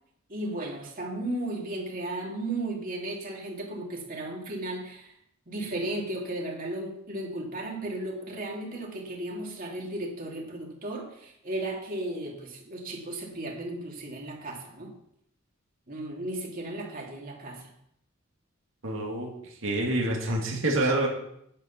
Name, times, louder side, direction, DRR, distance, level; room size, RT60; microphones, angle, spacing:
voice 1, 0.3-5.1 5.5-14.9 15.9-17.7, right 1 dB, 45° right, -1 dB, 2.8 m, -35 dB
voice 2, 18.8-19.3 19.6-21.1, right 1 dB, 75° right, -1 dB, 2.5 m, -27 dB
10.5 x 8.2 x 5.9 m, 0.73 s
head